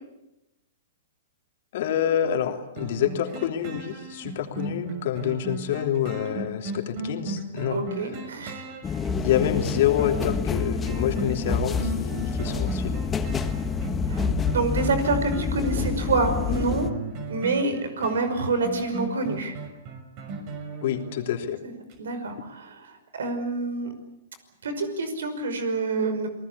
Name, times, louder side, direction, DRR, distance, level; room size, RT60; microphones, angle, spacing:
voice 1, 1.7-7.8 9.2-13.0 20.8-21.6, left 10 dB, 60° left, 5 dB, 3.2 m, -27 dB
sound 1, 2.8-21.5 21.9-22.0, right 3 dB, 45° right, 5.9 m, -36 dB
voice 2, 7.7-8.6 14.1-16.9 17.3-19.5 21.6-21.7 22.0-23.9 24.6-26.3, right 3 dB, 75° right, 10 dB, 5.5 m, -27 dB
sound 2, 8.8-16.9, left 5 dB, 15° left, 1.5 m, -28 dB
28.5 x 19.0 x 8.5 m, 0.93 s
hypercardioid pair, 125°, 0 cm